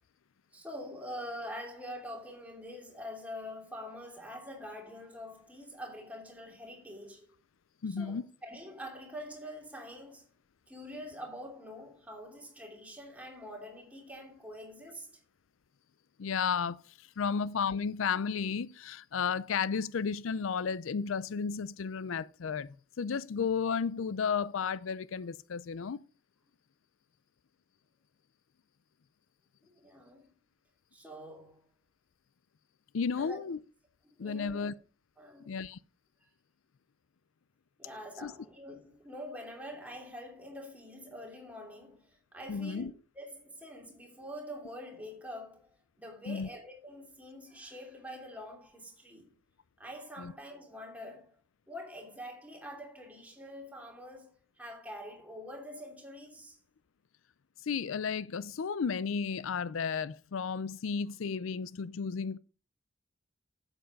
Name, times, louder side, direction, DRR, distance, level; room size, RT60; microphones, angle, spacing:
voice 1, 0.5-7.3 8.0-10.3 10.7-15.2 29.7-30.3 30.9-31.6 33.1-33.4 34.2-34.7 35.2-35.5 37.8-42.9 43.1-45.7 46.0-49.3 49.8-51.4 51.7-54.3 54.6-56.6, equal, 5° right, 2.9 m, -45 dB
voice 2, 7.8-8.3 16.2-26.0 32.9-33.6 34.2-34.7 35.5-35.8 38.2-38.3 42.5-42.9 46.3-46.5 50.2-50.3 57.6-62.4, left 6 dB, 85° left, 0.5 m, -33 dB
8.7 x 8.0 x 5.2 m
head